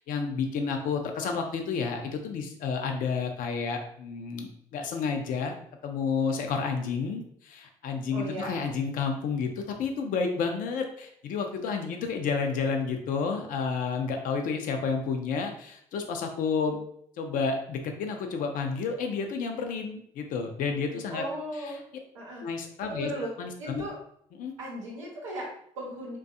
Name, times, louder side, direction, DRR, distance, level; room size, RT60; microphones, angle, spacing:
voice 1, 0.0-5.5 5.8-16.8 17.2-21.2 22.4-23.1 23.4-23.8 24.4-24.5, left 5 dB, 60° left, 4 dB, 0.5 m, -30 dB
voice 2, 8.1-8.6 21.1-21.8 22.1-22.5 22.9-23.3 23.6-24.0 24.6-26.2, right 1 dB, 90° right, -3 dB, 0.7 m, -36 dB
2.5 x 2.2 x 2.5 m, 0.68 s
hypercardioid pair, 45°, 16 cm